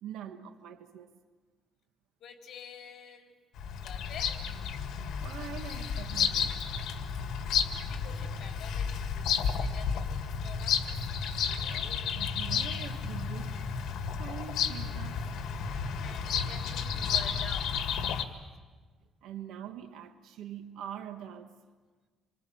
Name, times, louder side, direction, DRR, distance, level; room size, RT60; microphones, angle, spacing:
voice 1, 0.0-1.1 5.2-6.6 12.2-13.6 14.2-15.3 19.2-21.6, right 9 dB, 85° right, 1.4 m, -43 dB
voice 2, 2.2-3.3 3.8-4.6 7.8-11.0 11.3-12.0 16.0-17.7, left 7 dB, 60° left, 3.8 m, -48 dB
Bird vocalization bird call bird song, 3.6-18.2, left 6 dB, 75° left, 2.0 m, -32 dB
27.5 x 24.5 x 7.9 m
cardioid pair, 150°, 0 cm